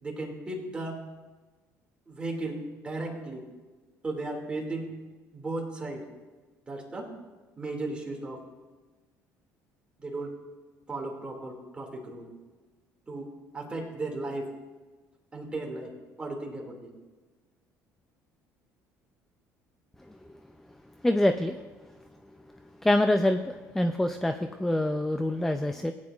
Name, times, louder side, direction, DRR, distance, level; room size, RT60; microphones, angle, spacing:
voice 1, 0.0-1.0 2.1-2.6 2.8-3.4 4.0-4.9 5.3-6.0 6.7-7.1 7.6-8.4 10.0-10.3 10.9-12.3 13.1-13.3 13.5-14.4 15.3-15.9 16.2-16.8, right 2 dB, 15° right, 0 dB, 2.2 m, -35 dB
voice 2, 21.0-21.6 22.8-25.9, left 1 dB, 5° left, 8 dB, 0.4 m, -25 dB
17.0 x 9.6 x 2.4 m, 1.3 s
cardioid pair, 125°, 6 cm